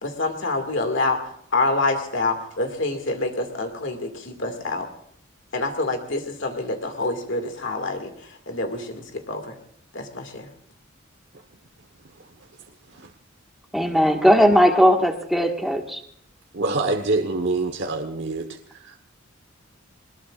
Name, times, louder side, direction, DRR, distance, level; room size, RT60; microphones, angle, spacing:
voice 1, 0.0-1.2 1.5-4.9 5.5-8.1 8.5-9.5 9.9-10.4, left 2 dB, 65° left, 5 dB, 2.2 m, -26 dB
voice 2, 13.7-16.0, equal, ahead, 2 dB, 1.7 m, -18 dB
voice 3, 16.5-18.5 18.8-19.0, right 2 dB, 60° right, 4 dB, 1.3 m, -25 dB
21.5 x 20.5 x 2.5 m, 0.64 s
head